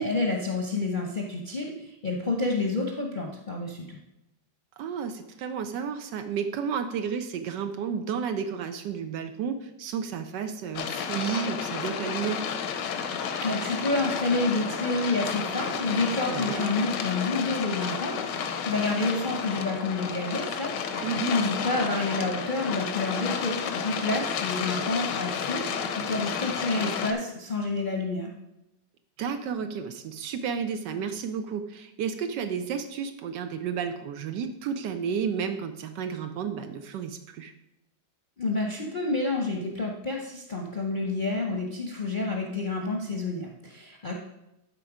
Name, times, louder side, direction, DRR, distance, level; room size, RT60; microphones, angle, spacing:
voice 1, 0.0-4.0 13.4-25.7 26.0-28.3 38.4-44.1, left 3 dB, 40° left, 0 dB, 0.8 m, -29 dB
voice 2, 4.8-12.5 16.3-16.7 21.0-21.4 29.2-37.5, right 7 dB, 80° right, 8 dB, 1.3 m, -32 dB
sound 1, 10.7-27.1, left 6 dB, 80° left, 1.4 m, -31 dB
11.5 x 4.5 x 4.9 m, 0.90 s
omnidirectional pair, 1.9 m